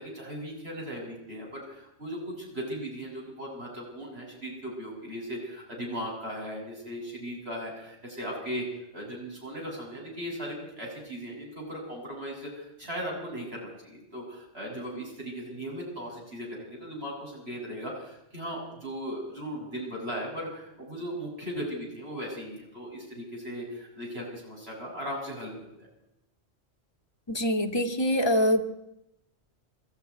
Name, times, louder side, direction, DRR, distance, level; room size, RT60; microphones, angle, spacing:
voice 1, 0.0-8.6 8.9-25.9, equal, 65° right, -2 dB, 7.5 m, -37 dB
voice 2, 27.3-28.7, equal, 25° left, 3 dB, 1.9 m, -24 dB
23.5 x 14.5 x 9.7 m, 0.87 s
omnidirectional pair, 1.1 m